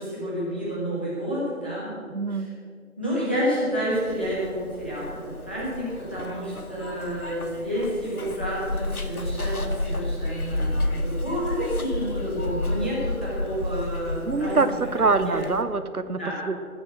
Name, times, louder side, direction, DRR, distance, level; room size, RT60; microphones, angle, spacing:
voice 1, 0.0-1.9 2.3-2.5 3.0-14.6 15.0-15.5 16.1-16.4, equal, 10° left, -10 dB, 1.5 m, -29 dB
voice 2, 2.1-2.5 14.3-16.2 16.5-16.6, right 3 dB, 85° right, 11 dB, 1.1 m, -24 dB
Zipper (clothing), 3.9-15.6, left 2 dB, 85° left, 1.9 m, -31 dB
18.5 x 7.5 x 7.5 m, 2.2 s
figure-of-eight pair, 170°, 43 cm